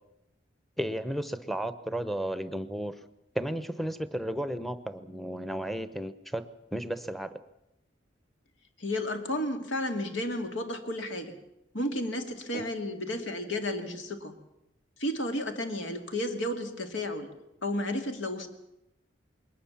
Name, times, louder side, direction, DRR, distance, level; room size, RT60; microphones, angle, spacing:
voice 1, 0.8-2.9 3.3-6.5 6.7-7.4 12.5-12.7, equal, ahead, 12 dB, 0.8 m, -33 dB
voice 2, 8.8-11.4 11.7-14.4 15.0-17.3 17.6-18.5, left 1 dB, 85° left, 6 dB, 2.3 m, -32 dB
21.5 x 19.0 x 7.2 m, 0.88 s
head